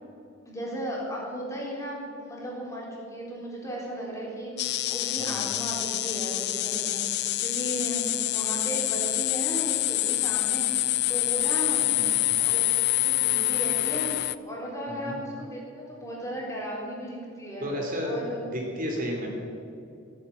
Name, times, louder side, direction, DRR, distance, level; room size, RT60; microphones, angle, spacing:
voice 1, 0.5-8.0 8.3-11.9 12.4-17.7 18.0-18.5, equal, 15° left, -4 dB, 4.0 m, -36 dB
sound 1, 4.6-14.4, left 17 dB, 55° left, 0.4 m, -26 dB
voice 2, 14.9-15.2 17.6-19.3, equal, 45° right, 0 dB, 3.0 m, -32 dB
15.5 x 9.6 x 8.4 m, 2.6 s
head